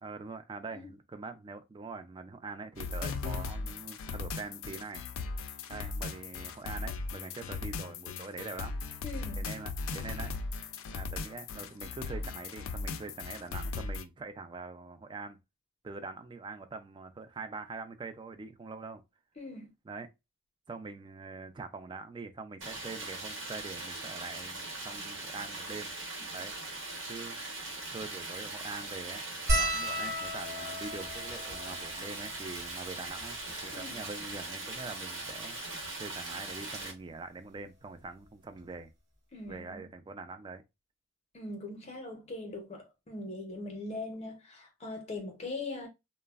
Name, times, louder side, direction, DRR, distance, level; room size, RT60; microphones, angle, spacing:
voice 1, 0.0-5.0 5.7-8.8 9.4-15.4 15.8-19.0 19.8-20.1 20.7-25.9 26.3-26.5 27.1-27.4 27.9-33.4 33.6-35.6 36.0-38.9 39.5-40.6, right 4 dB, 25° right, 0.3 m, -44 dB
sound 1, 2.8-14.0, left 4 dB, 90° left, 0.4 m, -38 dB
voice 2, 9.0-9.4 19.4-19.7 33.7-34.1 39.3-39.9 41.3-45.9, left 2 dB, 35° left, 0.6 m, -41 dB
Stream, 22.6-36.9, right 2 dB, 70° right, 0.9 m, -40 dB
sound 2, 29.5-34.1 34.8-34.9 35.1-35.3 36.6-36.8 38.3-38.4 38.6-38.8, equal, 55° right, 0.9 m, -35 dB
3.1 x 2.0 x 2.3 m
head